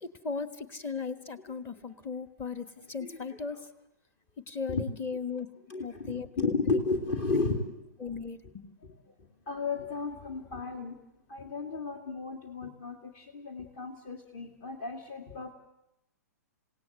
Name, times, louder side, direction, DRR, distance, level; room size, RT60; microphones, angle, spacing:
voice 1, 0.0-3.7 4.5-5.5 5.8-6.8 8.0-8.8, left 5 dB, 25° left, 12 dB, 1.5 m, -37 dB
voice 2, 5.7-7.9 9.5-11.0 11.3-15.5, left 4 dB, 45° left, 4 dB, 2.4 m, -33 dB
28.0 x 17.5 x 8.0 m, 0.88 s
figure-of-eight pair, 115°, 9 cm